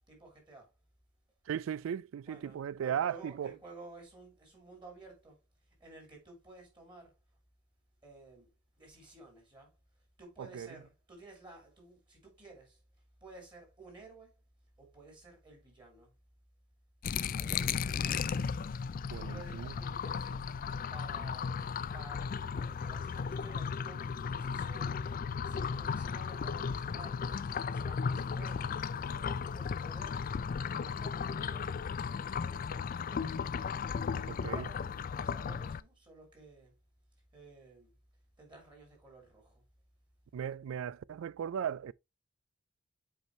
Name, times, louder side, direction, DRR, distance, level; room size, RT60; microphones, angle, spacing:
voice 1, 0.1-0.7 2.2-5.4 5.8-7.1 8.0-8.5 8.8-9.7 10.2-12.8 13.2-14.3 14.8-16.1 17.3-18.1 19.1-20.5 20.9-21.6 21.9-27.4 27.7-30.3 30.7-34.9 35.2-36.7 37.3-37.9 38.4-39.6, right 2 dB, 25° right, 3.3 m, -54 dB
voice 2, 1.5-3.5 10.4-10.8 17.5-17.8 19.1-19.7 34.3-34.7 40.3-41.9, right 8 dB, 80° right, 0.3 m, -37 dB
sound 1, 17.0-35.8, left 6 dB, 45° left, 0.3 m, -35 dB
7.9 x 4.7 x 3.1 m
head